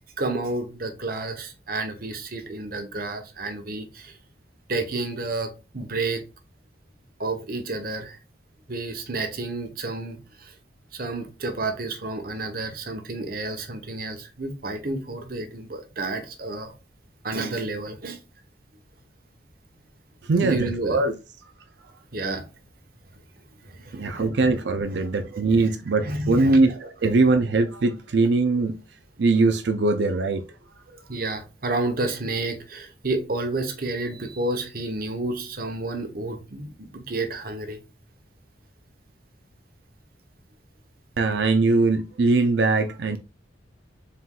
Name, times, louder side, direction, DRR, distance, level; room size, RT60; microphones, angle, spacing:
voice 1, 0.2-4.2 4.7-6.2 7.2-8.2 8.7-10.5 10.9-16.7 17.2-18.2 20.4-21.1 22.1-22.4 23.7-24.3 24.9-25.0 25.5-25.6 26.0-26.6 27.0-27.2 31.1-37.8, right 2 dB, 50° right, 1.0 m, -30 dB
voice 2, 20.3-21.1 23.9-28.8 29.2-30.4 41.2-43.2, right 3 dB, 70° right, 0.5 m, -21 dB
4.3 x 3.7 x 2.4 m
head